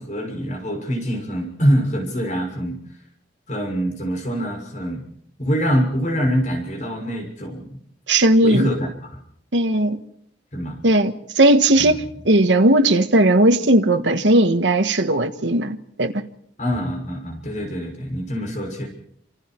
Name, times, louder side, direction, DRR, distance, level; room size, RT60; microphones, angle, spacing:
voice 1, 0.0-2.8 3.5-5.0 5.4-7.8 8.4-9.2 10.5-10.8 11.8-12.0 16.6-18.9, equal, 40° left, 6.4 m, -24 dB
voice 2, 8.1-8.7 9.5-10.0 10.8-16.2, right 1 dB, 85° right, 1.5 m, -17 dB
27.5 x 27.0 x 4.6 m
head